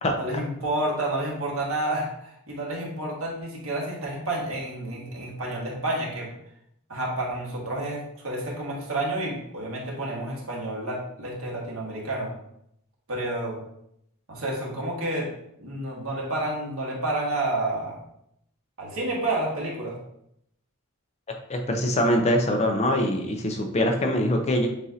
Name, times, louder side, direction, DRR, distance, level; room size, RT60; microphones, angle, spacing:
voice 1, 0.2-6.3 6.9-12.3 13.1-13.6 14.3-15.3 15.6-18.0 18.8-19.9, right 1 dB, 70° right, -3 dB, 1.4 m, -30 dB
voice 2, 21.5-24.7, left 1 dB, 30° left, 3 dB, 0.5 m, -23 dB
7.1 x 2.6 x 2.7 m, 0.74 s
head